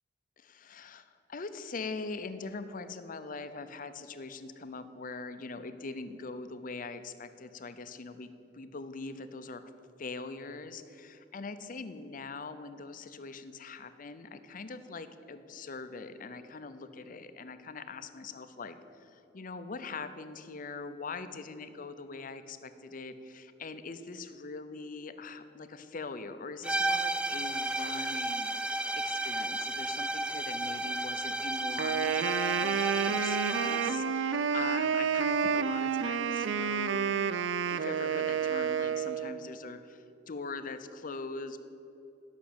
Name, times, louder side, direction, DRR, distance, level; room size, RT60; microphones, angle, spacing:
voice 1, 0.4-9.7 10.0-37.0 37.6-41.6, left 4 dB, 45° left, 10 dB, 0.7 m, -42 dB
sound 1, 26.6-34.1, right 2 dB, 5° right, 0.4 m, -33 dB
Wind instrument woodwind instrument, 31.8-39.4, right 7 dB, 80° right, 0.5 m, -30 dB
11.5 x 6.1 x 8.7 m, 2.8 s
head